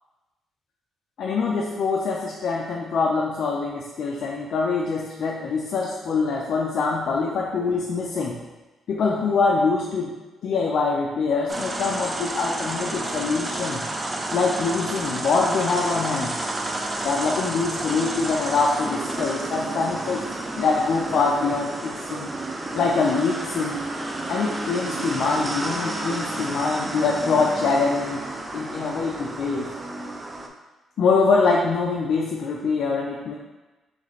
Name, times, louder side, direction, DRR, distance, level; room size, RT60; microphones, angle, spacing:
voice 1, 1.2-8.4 8.9-10.1 10.4-13.8 14.3-16.4 17.0-20.2 20.6-22.3 22.7-23.8 24.3-28.2 28.5-29.7 31.0-33.3, left 4 dB, 65° left, -2 dB, 0.4 m, -24 dB
sound 1, 11.5-30.5, right 2 dB, 20° right, 0.5 m, -30 dB
3.2 x 3.1 x 4.0 m, 1.2 s
cardioid pair, 90°, 0 cm